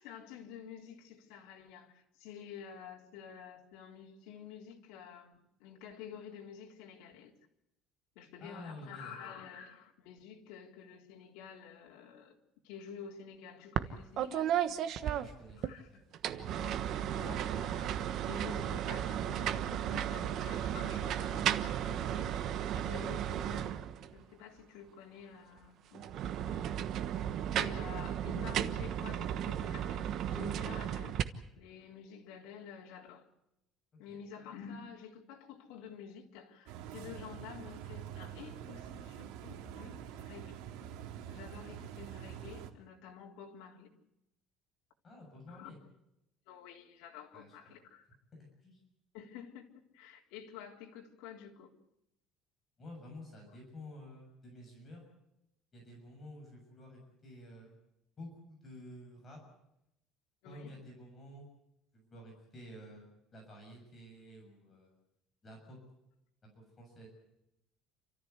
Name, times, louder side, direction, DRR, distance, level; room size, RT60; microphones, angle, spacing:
voice 1, 0.0-7.3 8.2-12.3 12.6-14.8 15.6-16.0 16.3-23.7 24.1-26.1 26.9-27.3 27.5-31.1 31.6-33.2 34.0-40.6 41.3-43.9 45.5-45.7 46.5-48.1 49.1-49.7 49.9-51.7 60.4-60.7, left 7 dB, 80° left, 3.8 m, -50 dB
voice 2, 8.4-9.2 15.0-16.0 26.3-26.6 34.1-34.2 45.0-45.8 47.3-47.8 48.6-48.8 52.8-55.0 55.7-57.7 58.2-59.4 60.4-61.5 61.9-63.1 63.3-64.9 65.4-65.8 66.5-67.1, left 1 dB, 20° left, 6.9 m, -51 dB
sound 1, 13.8-13.9 14.2-15.7 16.1-24.2 25.9-31.2, right 10 dB, 45° right, 1.2 m, -34 dB
sound 2, 36.7-42.7, right 10 dB, 80° right, 2.2 m, -46 dB
30.0 x 14.0 x 8.2 m
cardioid pair, 170°, 0 cm